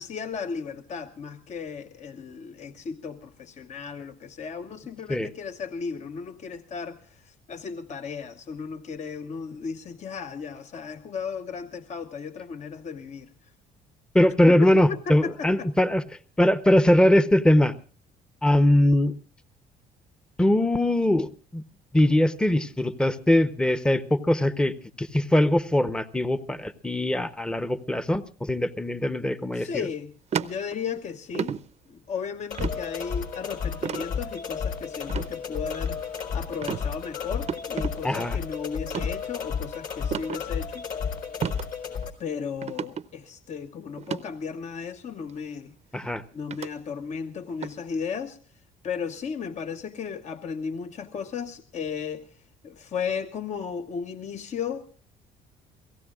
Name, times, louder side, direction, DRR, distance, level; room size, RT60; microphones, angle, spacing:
voice 1, 0.0-13.3 14.6-15.7 29.5-31.5 31.9-36.0 36.3-40.9 42.2-45.7 46.3-48.4 48.8-52.3 52.6-55.0, left 6 dB, 45° left, 1.0 m, -35 dB
voice 2, 14.1-16.0 16.4-17.7 18.4-19.1 20.4-21.6 21.9-29.9 38.0-38.4 45.9-46.2, left 1 dB, 5° left, 0.8 m, -21 dB
sound 1, 30.3-31.0 31.3-31.6 32.6-32.8 33.8-34.1 35.1-35.3 35.8-36.2 36.6-36.8 37.5-37.9 38.8-39.1 40.1-40.4 41.4-41.6 42.0-42.1 42.6-43.0 44.0-44.2 45.3-45.4 46.5-46.7 47.6-47.8, right 7 dB, 40° right, 0.7 m, -31 dB
sound 2, 32.5-42.1, left 6 dB, 60° left, 4.2 m, -32 dB
29.0 x 17.5 x 2.4 m
cardioid pair, 110°, 17 cm